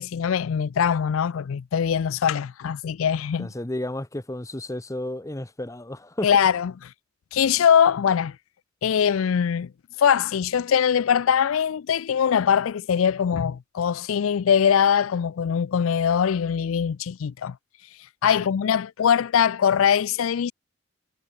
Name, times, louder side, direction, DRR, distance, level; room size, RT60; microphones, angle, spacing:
voice 1, 0.0-3.5 6.2-6.7 7.3-8.4 8.8-9.7 10.0-17.6 18.2-20.5, left 8 dB, 75° left, 0.4 m, -22 dB
voice 2, 3.4-6.3 18.4-18.5, left 1 dB, 15° left, 0.8 m, -32 dB
head